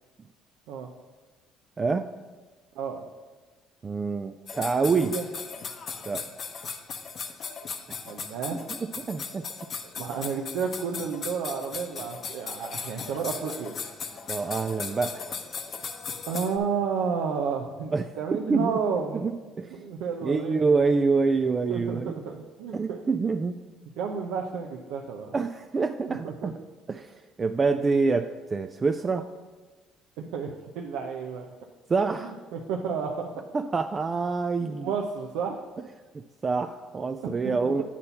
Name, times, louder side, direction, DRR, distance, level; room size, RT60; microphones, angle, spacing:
voice 1, 1.8-2.1 3.8-5.1 6.1-6.3 8.5-9.5 14.3-15.3 17.9-18.8 19.1-19.8 20.2-22.2 22.7-23.6 25.3-26.6 26.9-29.3 31.9-32.3 33.5-34.9 36.4-37.8, right 4 dB, 30° right, 8 dB, 0.3 m, -26 dB
sound 1, 4.5-16.6, left 5 dB, 45° left, 0.7 m, -37 dB
voice 2, 4.9-5.2 8.1-8.6 9.9-13.7 16.2-19.3 19.7-20.9 21.7-23.0 24.0-25.3 26.1-26.5 30.2-31.5 32.2-33.4 34.6-35.6, right 6 dB, 80° right, 1 dB, 0.6 m, -31 dB
8.5 x 4.2 x 5.7 m, 1.4 s
cardioid pair, 105°, 0 cm